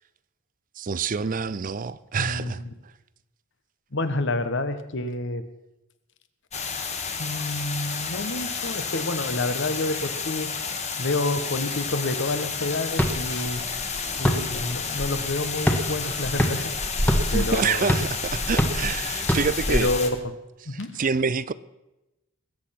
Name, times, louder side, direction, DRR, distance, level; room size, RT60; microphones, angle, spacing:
voice 1, 0.8-2.9 17.1-19.9 20.6-21.5, right 5 dB, 40° right, 0.5 m, -27 dB
voice 2, 2.2-2.5 3.9-5.4 7.2-10.6 11.0-13.7 14.1-16.8 17.3-17.9 19.7-20.1 20.7-21.0, left 2 dB, 55° left, 1.2 m, -28 dB
sound 1, 6.5-20.1, left 5 dB, 30° left, 1.5 m, -31 dB
sound 2, 12.9-19.8, equal, 10° left, 1.4 m, -27 dB
21.0 x 8.7 x 5.9 m
head